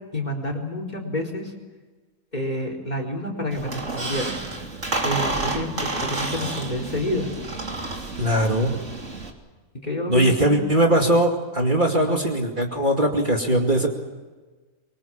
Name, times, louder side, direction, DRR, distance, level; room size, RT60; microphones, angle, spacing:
voice 1, 0.1-1.5 2.3-4.4 5.0-7.3 9.7-10.6 11.9-12.2, left 1 dB, 30° left, 3 dB, 4.6 m, -29 dB
Squeak, 3.5-9.3, right 2 dB, 55° right, 3.5 m, -30 dB
voice 2, 8.2-8.8 10.1-13.9, right 1 dB, 35° right, 1 dB, 2.6 m, -20 dB
25.0 x 23.5 x 7.4 m, 1.3 s
omnidirectional pair, 1.5 m